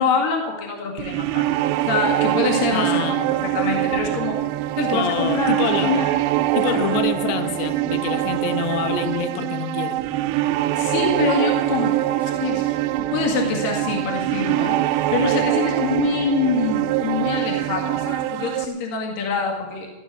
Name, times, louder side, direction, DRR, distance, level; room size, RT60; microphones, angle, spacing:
voice 1, 0.0-1.5 1.9-4.4 4.8-5.5 5.8-6.1 6.6-6.9 10.8-12.7 13.0-19.9, left 5 dB, 60° left, 3.4 m, -25 dB
sound 1, 1.0-18.7, right 15 dB, 85° right, 2.8 m, -23 dB
voice 2, 2.7-3.3 4.9-6.1 6.5-10.0, left 8 dB, 85° left, 3.2 m, -26 dB
16.0 x 11.5 x 6.2 m
omnidirectional pair, 4.9 m